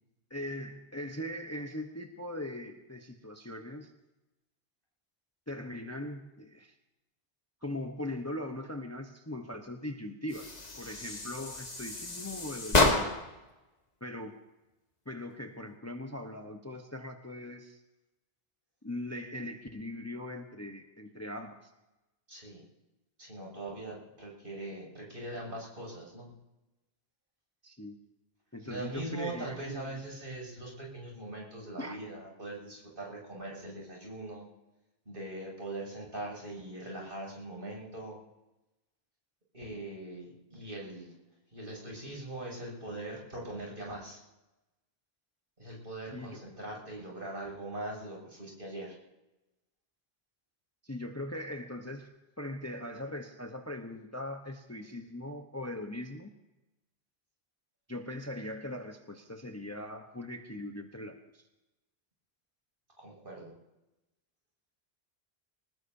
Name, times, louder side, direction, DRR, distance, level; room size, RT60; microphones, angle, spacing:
voice 1, 0.3-3.9 5.5-6.7 7.6-13.1 14.0-14.4 15.1-17.8 18.8-21.7 27.6-28.0 28.5-30.0 31.8-32.0 46.1-46.4 50.8-56.3 57.9-61.4, left 1 dB, 15° left, 4 dB, 1.0 m, -40 dB
sound 1, 10.3-13.4, left 2 dB, 40° left, 1.7 m, -30 dB
voice 2, 22.3-22.6 23.2-26.3 28.6-34.5 35.1-38.2 39.5-41.1 41.5-44.2 45.6-49.0 63.0-63.5, right 2 dB, 60° right, -2 dB, 7.3 m, -41 dB
24.5 x 20.0 x 2.8 m, 1.0 s
omnidirectional pair, 1.1 m